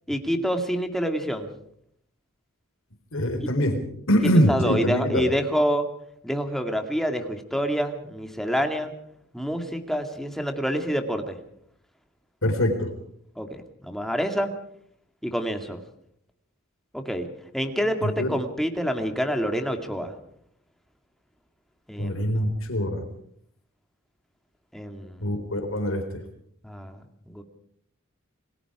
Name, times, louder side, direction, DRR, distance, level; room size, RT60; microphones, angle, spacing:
voice 1, 0.1-1.5 4.5-5.8 6.2-8.9 9.3-11.4 13.4-14.5 15.2-15.8 16.9-17.3 17.5-20.1 21.9-22.3 24.7-25.3 26.6-27.0 27.3-27.4, equal, ahead, 5 dB, 2.2 m, -27 dB
voice 2, 3.1-3.8 4.1-5.3 12.4-12.9 18.0-18.3 22.0-23.0 25.2-26.0, equal, 65° left, 6 dB, 4.0 m, -23 dB
29.0 x 20.5 x 5.0 m, 0.67 s
head